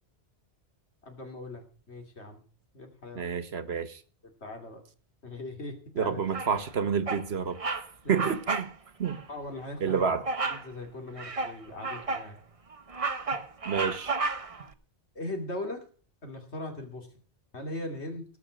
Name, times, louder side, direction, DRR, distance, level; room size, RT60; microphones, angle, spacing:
voice 1, 1.0-2.4 2.7-3.3 4.4-4.8 5.2-6.2 8.0-8.3 9.3-10.1 10.5-12.4 15.1-15.8 16.2-17.1 17.5-18.2, left 2 dB, 80° left, 2.9 m, -39 dB
voice 2, 3.1-4.0 6.0-7.6 8.1-8.7 9.0-9.2 9.8-10.2 13.6-14.2, right 6 dB, 70° right, 1.4 m, -29 dB
Bird vocalization bird call bird song, 6.3-6.7 7.1-7.3 7.6-7.9 8.1-8.7 9.0-9.2 10.3-10.7 11.2-12.3 12.7-14.6, right 4 dB, 35° right, 0.9 m, -32 dB
18.0 x 6.1 x 6.3 m
omnidirectional pair, 1.1 m